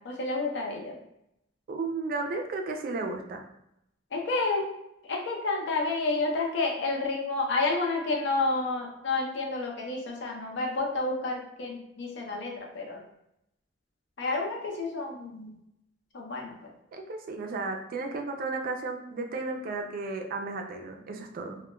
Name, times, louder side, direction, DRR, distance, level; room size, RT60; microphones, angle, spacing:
voice 1, 0.0-1.0 4.1-4.6 5.0-13.0 14.2-15.6 16.1-16.7, left 3 dB, 65° left, 0 dB, 0.5 m, -30 dB
voice 2, 1.7-3.4 16.9-21.6, right 3 dB, 50° right, 4 dB, 0.4 m, -34 dB
2.2 x 2.1 x 3.0 m, 0.81 s
head